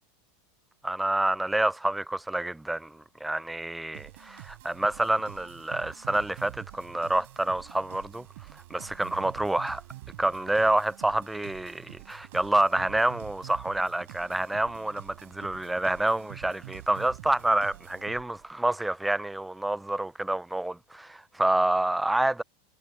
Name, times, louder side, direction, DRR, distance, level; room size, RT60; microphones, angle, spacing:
voice 1, 0.8-8.2 8.7-9.8 10.2-22.4, right 1 dB, 5° right, 0.5 m, -28 dB
sound 1, 3.9-18.5, right 19 dB, 70° right, 5.0 m, -47 dB
hypercardioid pair, 100°, 0 cm